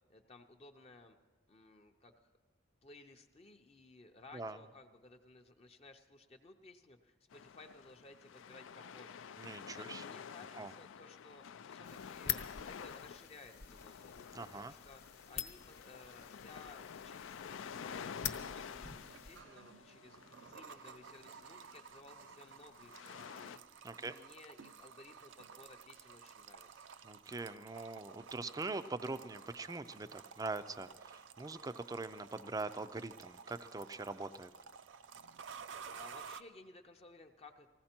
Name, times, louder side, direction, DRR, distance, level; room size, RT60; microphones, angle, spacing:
voice 1, 0.1-1.2 1.5-2.3 2.8-12.4 12.7-14.2 14.5-15.0 15.3-23.6 24.0-26.9 35.9-37.7, left 3 dB, 30° left, 4 dB, 0.6 m, -58 dB
sound 1, 7.3-23.6, left 7 dB, 80° left, 0.4 m, -50 dB
voice 2, 9.4-10.0 10.6-10.7 14.3-14.7 23.8-24.2 27.0-34.5, right 3 dB, 20° right, 12 dB, 0.4 m, -42 dB
sound 2, 11.8-19.4, left 9 dB, 50° left, 1.0 m, -46 dB
sound 3, 17.7-36.4, right 6 dB, 75° right, 0.5 m, -54 dB
19.5 x 15.5 x 4.4 m, 1.3 s
head